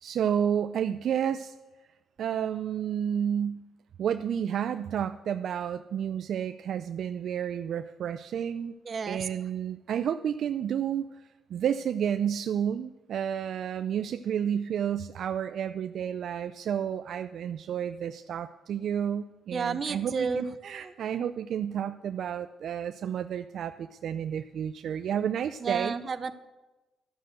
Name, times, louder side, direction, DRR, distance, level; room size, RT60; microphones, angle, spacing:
voice 1, 0.0-1.5 2.2-3.6 4.0-8.7 9.1-11.1 11.5-25.9, right 9 dB, 65° right, 10 dB, 0.4 m, -31 dB
voice 2, 8.9-9.3 19.5-20.9 25.6-26.3, right 5 dB, 45° right, 11 dB, 0.8 m, -31 dB
12.0 x 6.7 x 7.7 m, 1.1 s
cardioid pair, 90°, 0 cm